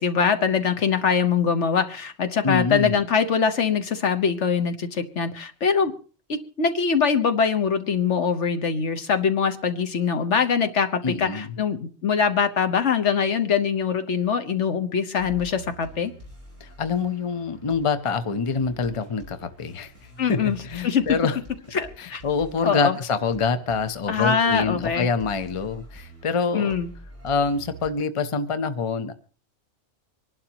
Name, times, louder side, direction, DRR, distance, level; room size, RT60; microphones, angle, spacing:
voice 1, 0.0-5.9 6.3-16.1 20.2-20.6 20.8-21.0 21.7-22.2 22.6-23.0 24.1-25.1 26.5-26.9, left 6 dB, 70° left, 9 dB, 1.4 m, -23 dB
voice 2, 2.4-3.0 11.0-11.6 16.6-19.9 20.3-21.4 22.0-26.8 27.2-29.1, left 5 dB, 30° left, 10 dB, 0.8 m, -26 dB
sound 1, 15.2-27.9, equal, 10° right, 5.6 m, -46 dB
25.5 x 11.5 x 2.9 m, 0.39 s
omnidirectional pair, 1.3 m